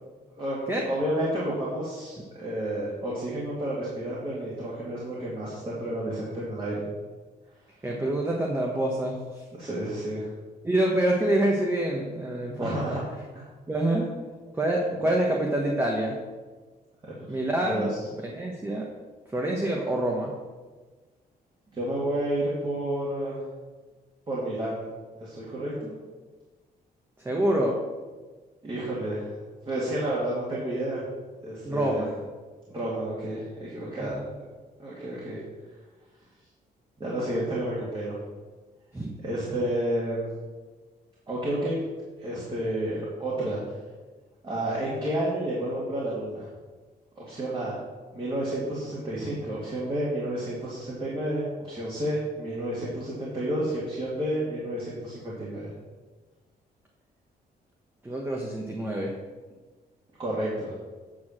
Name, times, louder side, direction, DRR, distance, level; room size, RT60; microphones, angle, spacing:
voice 1, 0.8-6.9 9.6-10.3 12.6-13.0 13.3-13.4 17.0-17.3 17.6-18.0 21.7-23.4 24.3-24.8 25.2-25.9 28.6-29.3 29.7-31.0 31.4-32.1 32.7-34.2 34.8-35.4 37.0-38.1 39.2-40.3 41.3-41.8 42.2-43.6 44.4-46.5 47.2-47.8 48.1-55.7 60.2-60.7, right 1 dB, 30° right, -7 dB, 2.3 m, -30 dB
voice 2, 7.8-9.4 10.6-13.0 13.7-14.1 14.5-16.2 17.3-17.9 18.2-18.9 19.3-20.4 27.2-27.8 31.6-32.1 34.0-34.3 38.9-39.1 58.0-59.1, right 1 dB, 15° right, -1 dB, 1.1 m, -26 dB
8.5 x 4.7 x 7.3 m, 1.3 s
cardioid pair, 140°, 17 cm